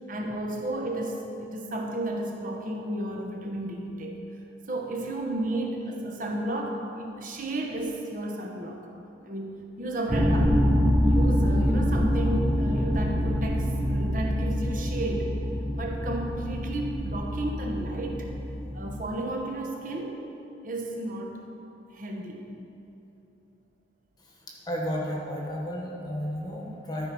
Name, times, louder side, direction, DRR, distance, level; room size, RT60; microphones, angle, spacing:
voice 1, 0.1-4.2 4.7-8.8 9.2-10.6 11.0-15.4 15.8-18.3 18.7-20.2 20.6-21.4 21.9-22.5, right 1 dB, 45° right, 1 dB, 1.0 m, -33 dB
sound 1, 10.1-19.1, equal, 15° right, 0.8 m, -25 dB
voice 2, 24.7-27.1, equal, 20° left, -2 dB, 1.1 m, -32 dB
13.0 x 4.6 x 5.3 m, 2.9 s
head